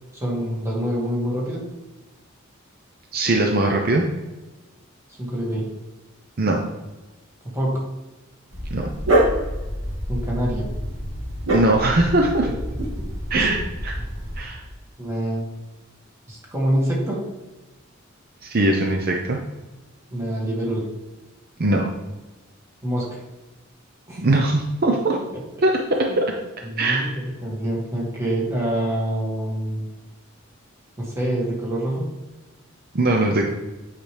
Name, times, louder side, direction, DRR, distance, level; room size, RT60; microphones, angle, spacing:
voice 1, 0.1-1.6 5.2-5.7 7.5-7.9 10.1-10.6 12.4-12.5 13.3-13.6 15.0-15.5 16.3-17.3 20.1-20.9 22.8-23.2 24.1-24.2 26.1-26.2 26.7-29.8 31.0-32.1, right 1 dB, 15° right, -4 dB, 2.1 m, -26 dB
voice 2, 3.1-4.0 6.4-6.6 8.7-8.9 11.5-12.5 13.3-13.6 13.8-13.9 14.4-14.6 18.4-19.4 21.6-21.9 24.2-25.2 25.6-25.7 26.0-26.2 26.8-27.1 32.9-33.4, right 2 dB, 50° right, 1 dB, 0.7 m, -20 dB
Dog, 8.5-14.4, right 1 dB, 85° right, 2.4 m, -26 dB
8.8 x 5.0 x 3.4 m, 1.1 s
head